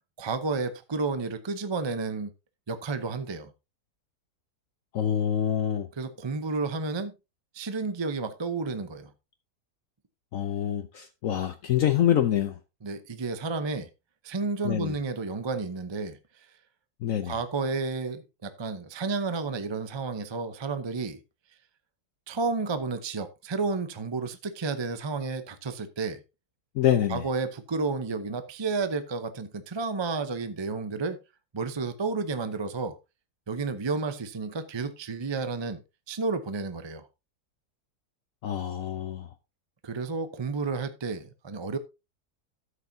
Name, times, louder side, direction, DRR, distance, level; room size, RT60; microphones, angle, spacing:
voice 1, 0.2-2.3 2.7-3.5 6.0-7.1 7.5-9.1 12.8-13.9 14.2-16.2 17.2-21.2 22.3-26.2 27.1-31.2 31.5-33.0 33.5-35.8 36.1-37.1 39.8-41.8, right 4 dB, 30° right, 0.5 m, -31 dB
voice 2, 4.9-5.9 10.3-12.6 14.6-14.9 17.0-17.3 26.8-27.2 38.4-39.3, left 10 dB, 65° left, 1.0 m, -26 dB
12.5 x 8.1 x 2.7 m
omnidirectional pair, 1.7 m